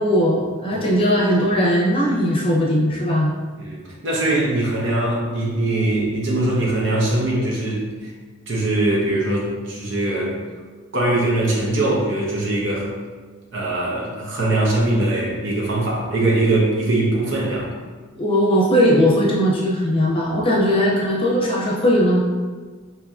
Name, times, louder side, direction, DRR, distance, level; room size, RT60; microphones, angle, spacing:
voice 1, 0.0-3.3 18.2-22.2, equal, 30° left, -4 dB, 0.7 m, -18 dB
voice 2, 3.6-8.1 8.5-10.3 10.9-12.9 13.5-17.7, right 2 dB, 65° right, -4 dB, 0.9 m, -21 dB
4.8 x 2.8 x 2.4 m, 1.4 s
head